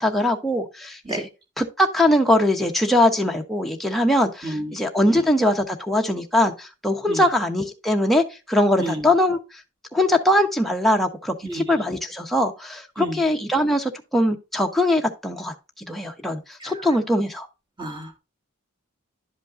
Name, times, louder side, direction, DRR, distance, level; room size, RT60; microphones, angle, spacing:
voice 1, 0.0-1.3 1.6-9.4 9.9-15.5 15.9-17.5, left 1 dB, ahead, 0.9 m, -21 dB
voice 2, 17.8-18.2, right 1 dB, 20° right, 1.9 m, -30 dB
11.5 x 5.3 x 2.5 m
head